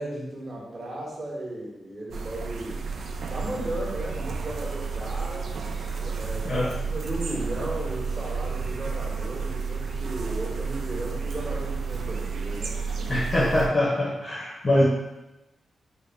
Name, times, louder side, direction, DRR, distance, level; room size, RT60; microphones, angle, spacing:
voice 1, 0.0-2.8 3.3-5.5 6.0-13.1, right 1 dB, 30° right, -5 dB, 0.7 m, -35 dB
sound 1, 2.1-13.7, right 5 dB, 65° right, 0.3 m, -31 dB
voice 2, 13.1-14.8, left 1 dB, 40° left, -5 dB, 0.7 m, -23 dB
3.7 x 2.1 x 3.3 m, 0.97 s
wide cardioid pair, 155°, 0 cm